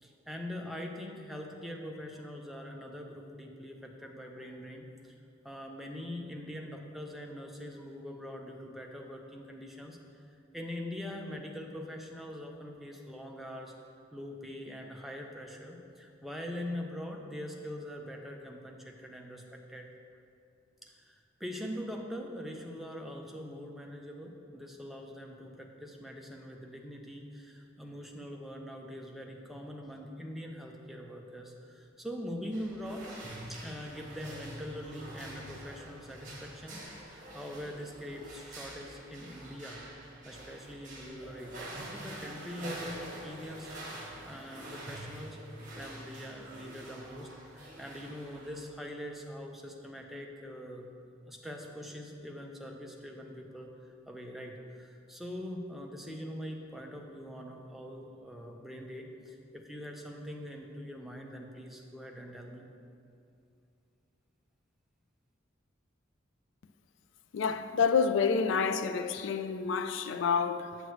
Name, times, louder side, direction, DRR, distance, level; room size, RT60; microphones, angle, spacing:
voice 1, 0.0-5.2 5.4-13.7 14.1-19.9 20.8-33.1 33.5-45.4 45.7-50.9 51.3-62.7, equal, ahead, 0.5 m, -43 dB
sound 1, 32.5-48.6, right 1 dB, 40° right, 1.3 m, -46 dB
voice 2, 67.3-70.8, left 5 dB, 65° left, 0.3 m, -28 dB
8.0 x 6.2 x 3.1 m
head